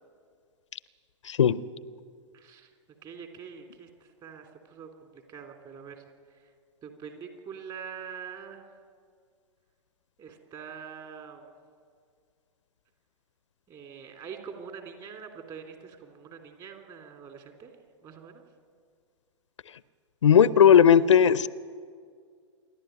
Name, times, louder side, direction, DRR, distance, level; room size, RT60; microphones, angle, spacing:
voice 1, 1.3-1.6 20.2-21.5, left 8 dB, 70° left, 18 dB, 0.6 m, -17 dB
voice 2, 2.3-2.7 3.0-6.5 6.8-8.8 10.2-11.5 13.7-17.7 18.0-18.4, right 6 dB, 30° right, 5 dB, 3.3 m, -44 dB
27.5 x 11.5 x 9.3 m, 2.1 s
figure-of-eight pair, 105°, 16 cm